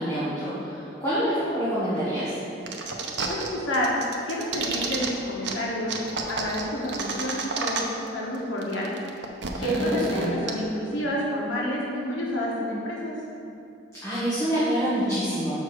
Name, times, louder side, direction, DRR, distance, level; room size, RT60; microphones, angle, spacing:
voice 1, 0.0-2.4 9.5-10.4 14.0-15.6, equal, 15° left, -12 dB, 1.6 m, -27 dB
sound 1, 2.7-3.5 3.7-5.1 5.4-5.5 5.9-8.1 8.3-8.4 8.6-10.5, right 4 dB, 65° right, 0.7 m, -30 dB
voice 2, 3.3-3.9 4.3-5.9 6.3-7.8 8.1-8.9 9.6-13.1, equal, 90° left, -4 dB, 1.3 m, -29 dB
6.3 x 4.7 x 6.4 m, 2.7 s
head